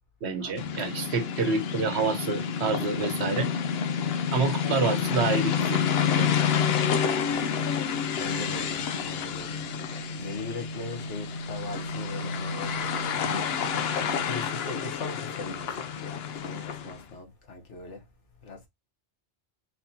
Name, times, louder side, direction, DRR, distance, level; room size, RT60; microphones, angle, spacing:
voice 1, 0.2-3.5 4.3-5.8 6.1-6.3, right 4 dB, 70° right, 1.2 m, -28 dB
sound 1, 0.6-17.0, left 7 dB, 65° left, 0.9 m, -29 dB
voice 2, 8.2-8.8 9.1-9.6 10.2-13.7 14.3-18.0 18.4-18.6, left 3 dB, 80° left, 1.6 m, -39 dB
4.2 x 4.1 x 2.8 m
omnidirectional pair, 1.2 m